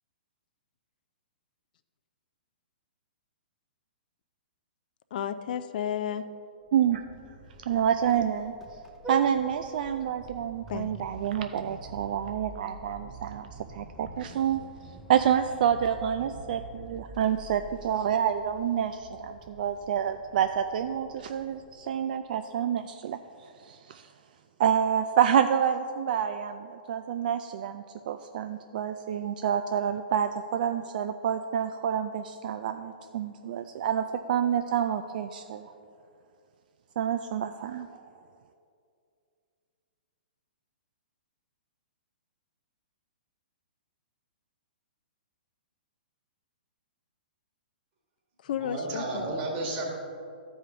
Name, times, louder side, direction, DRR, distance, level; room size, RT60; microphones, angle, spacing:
voice 1, 5.1-6.3 10.7-11.1 48.4-49.3, left 9 dB, 55° left, 12 dB, 0.4 m, -32 dB
Vehicle horn car horn honking, 6.7-22.1, right 3 dB, 10° right, 0.7 m, -45 dB
voice 2, 6.7-7.0 7.7-8.5 9.1-14.6 15.1-24.1 24.6-35.7 37.0-37.9, right 9 dB, 60° right, 8 dB, 0.3 m, -28 dB
voice 3, 48.6-49.9, right 2 dB, 35° right, -2 dB, 2.1 m, -32 dB
12.0 x 4.9 x 3.8 m, 2.5 s
hypercardioid pair, 125°, 5 cm